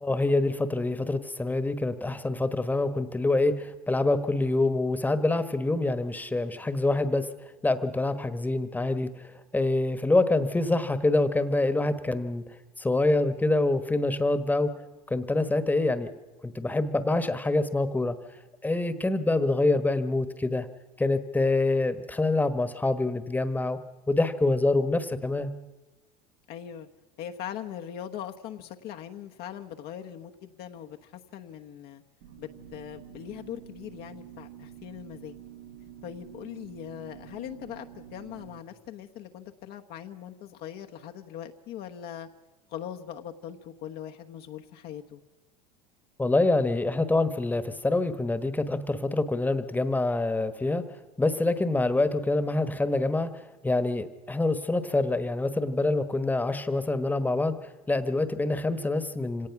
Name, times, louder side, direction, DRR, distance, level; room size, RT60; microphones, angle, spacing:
voice 1, 0.0-7.3 7.6-12.4 12.8-14.7 15.1-16.1 16.4-18.2 18.6-20.7 21.0-23.8 24.1-25.5 46.2-50.8 51.2-53.3 53.6-57.6 57.9-59.5, left 2 dB, 10° left, 12 dB, 1.3 m, -26 dB
voice 2, 26.5-26.9 27.2-32.0 32.4-35.4 36.0-42.3 42.7-45.2, left 10 dB, 55° left, 4 dB, 1.2 m, -41 dB
sound 1, 32.2-38.6, right 9 dB, 85° right, 4.0 m, -47 dB
25.5 x 18.0 x 6.0 m, 1.1 s
supercardioid pair, 105°, 19 cm